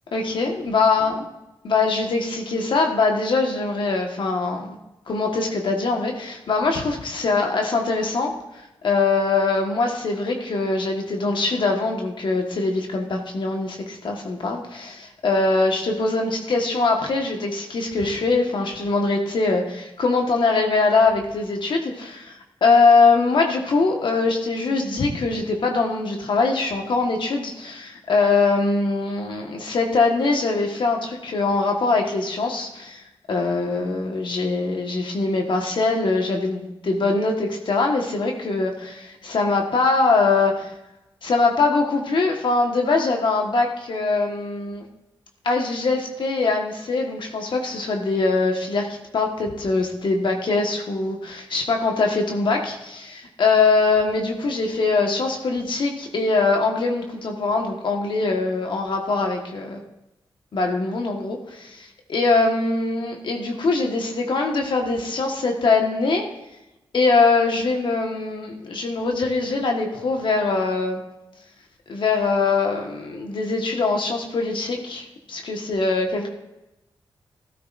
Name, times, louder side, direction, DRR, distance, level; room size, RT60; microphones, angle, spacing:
voice 1, 0.1-1.2 1.6-4.8 5.1-8.3 8.8-40.7 41.2-44.8 45.4-59.8 60.5-66.3 66.9-71.0 71.9-76.3, left 3 dB, 65° left, 2 dB, 1.4 m, -22 dB
14.0 x 12.5 x 2.6 m, 0.94 s
cardioid pair, 70°, 9 cm